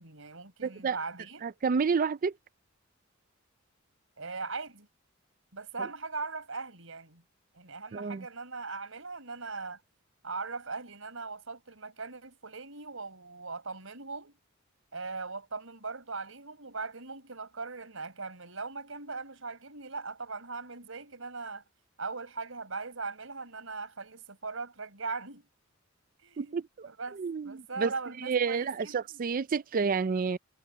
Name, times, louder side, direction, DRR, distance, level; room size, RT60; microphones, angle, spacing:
voice 1, 0.0-1.6 4.2-4.9 5.5-7.2 7.5-9.8 10.2-14.3 14.9-21.6 22.0-25.5 26.2-29.2, right 4 dB, 70° right, 5.3 m, -40 dB
voice 2, 0.6-1.0 1.4-2.3 7.9-8.2 26.4-26.9 27.2-27.9 28.2-30.4, right 5 dB, 40° right, 0.4 m, -29 dB
head